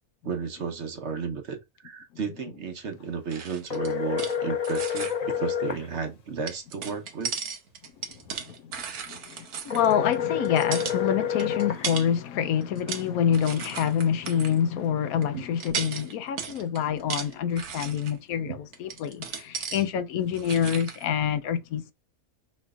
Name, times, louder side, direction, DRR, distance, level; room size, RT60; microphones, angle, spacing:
voice 1, 0.2-1.6 1.8-7.3 15.3-15.5 18.4-18.6, right 6 dB, 55° right, 1.1 m, -33 dB
sound 1, 3.3-4.4 4.6-5.2 6.5-10.1 10.5-11.0 11.4-12.1 12.6-13.1 13.3-14.6 15.2-15.3 15.6-18.2 18.7-19.8 20.2-21.0, right 6 dB, 85° right, 1.4 m, -36 dB
sound 2, 3.7-5.8 9.7-11.9, left 8 dB, 50° left, 0.4 m, -28 dB
voice 2, 8.3-8.7 9.1-21.9, left 8 dB, 75° left, 1.0 m, -27 dB
6.3 x 3.2 x 2.4 m
omnidirectional pair, 1.6 m